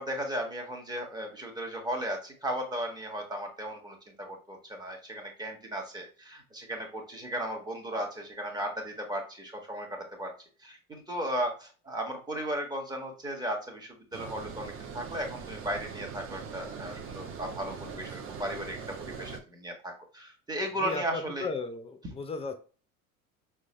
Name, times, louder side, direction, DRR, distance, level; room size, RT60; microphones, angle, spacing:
voice 1, 0.0-10.3 10.6-21.5, right 1 dB, 10° right, 1 dB, 1.3 m, -36 dB
Water, 14.1-19.4, right 6 dB, 30° right, 0.7 m, -41 dB
voice 2, 20.8-22.6, left 4 dB, 15° left, 8 dB, 0.5 m, -35 dB
6.0 x 2.3 x 3.0 m, 0.36 s
figure-of-eight pair, 70°, 43 cm